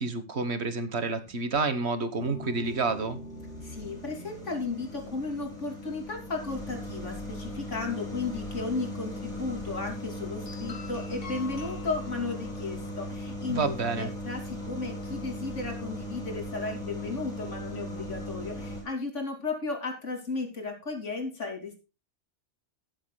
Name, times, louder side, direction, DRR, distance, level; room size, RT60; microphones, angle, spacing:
voice 1, 0.0-3.2 13.5-14.1, right 4 dB, 65° right, 11 dB, 1.6 m, -29 dB
sound 1, 1.0-1.7 2.2-18.8, equal, 5° left, 6.9 m, -39 dB
sound 2, 2.2-14.6, left 1 dB, 50° left, 1.4 m, -48 dB
voice 2, 3.6-21.8, left 3 dB, 80° left, 3 dB, 3.2 m, -34 dB
18.5 x 7.8 x 2.3 m, 0.32 s
omnidirectional pair, 1.2 m